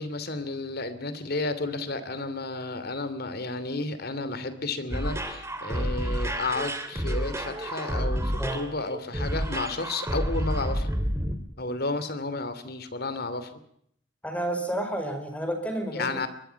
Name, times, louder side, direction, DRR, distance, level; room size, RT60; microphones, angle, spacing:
voice 1, 0.0-10.9 11.6-13.5 15.9-16.3, left 2 dB, 55° left, 12 dB, 2.8 m, -32 dB
sound 1, 4.9-11.3, equal, 15° right, 3.0 m, -29 dB
voice 2, 14.2-16.3, right 1 dB, 10° left, 5 dB, 5.5 m, -31 dB
23.5 x 21.0 x 5.8 m, 0.69 s
head